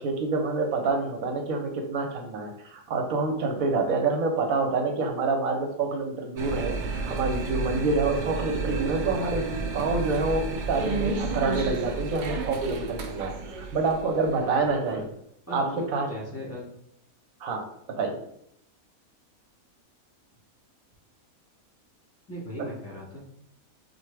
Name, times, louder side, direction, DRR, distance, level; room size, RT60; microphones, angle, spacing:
voice 1, 0.0-15.0 15.5-15.6 15.9-16.1 17.4-17.6 18.0-18.2, right 3 dB, 70° right, 3 dB, 1.1 m, -27 dB
sound 1, 6.4-15.0, right 4 dB, 85° right, 0.4 m, -32 dB
voice 2, 14.6-15.0 15.5-16.7 22.3-23.2, equal, 10° left, -5 dB, 1.6 m, -38 dB
6.0 x 2.5 x 3.4 m, 0.74 s
omnidirectional pair, 1.5 m